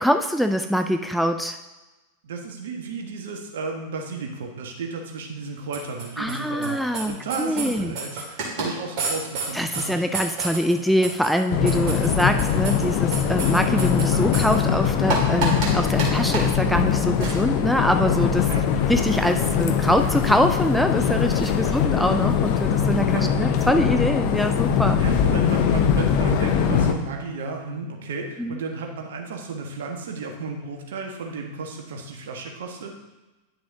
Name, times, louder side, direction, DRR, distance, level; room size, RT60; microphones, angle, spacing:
voice 1, 0.0-1.6 6.2-7.9 9.5-18.5 18.9-25.0 28.4-28.6, equal, ahead, 6 dB, 0.3 m, -24 dB
voice 2, 2.2-10.0 18.5-18.6 21.6-21.8 23.1-23.4 25.0-32.9, right 4 dB, 60° right, 2 dB, 1.2 m, -33 dB
sound 1, 5.7-6.3 6.6-6.7 6.9-7.0 7.3-8.7 9.0-9.9 10.1-14.6 14.8-15.7 16.0-16.1 16.3-16.5 17.2-17.4 19.2-19.3 21.5-21.8 22.6-22.7 22.8-22.9 23.6-23.7, right 3 dB, 40° right, 2.0 m, -29 dB
sound 2, 11.5-26.9, left 7 dB, 45° left, 0.6 m, -22 dB
10.0 x 6.0 x 2.7 m, 1.1 s
figure-of-eight pair, 90°, 0 cm